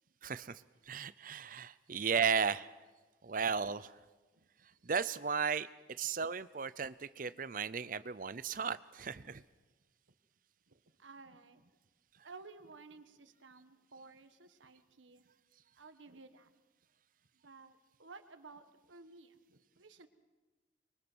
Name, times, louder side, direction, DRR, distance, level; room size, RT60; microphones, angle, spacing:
voice 1, 0.2-2.7 3.2-4.0 4.8-9.4, right 6 dB, 45° right, 16 dB, 0.6 m, -35 dB
voice 2, 10.7-11.7 12.2-15.3 15.7-16.5 17.4-20.1, right 3 dB, 85° right, 10 dB, 1.4 m, -55 dB
24.5 x 23.0 x 6.2 m, 1.3 s
head